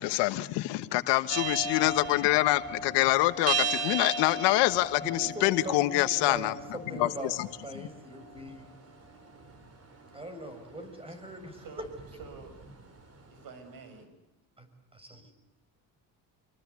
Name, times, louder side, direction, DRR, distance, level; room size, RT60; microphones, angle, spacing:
voice 1, 0.0-6.5 7.0-7.5 7.7-7.9, left 18 dB, 85° left, 13 dB, 1.3 m, -26 dB
sound 1, 1.3-13.4, right 4 dB, 35° right, 5.0 m, -37 dB
voice 2, 5.0-7.4 7.6-8.7 10.1-11.7 14.6-15.3, right 1 dB, 15° right, 9 dB, 6.3 m, -41 dB
voice 3, 11.5-11.9 12.2-12.6 13.3-14.1, right 5 dB, 55° right, 9 dB, 6.8 m, -47 dB
27.0 x 24.5 x 8.3 m, 0.99 s
cardioid pair, 100°, 41 cm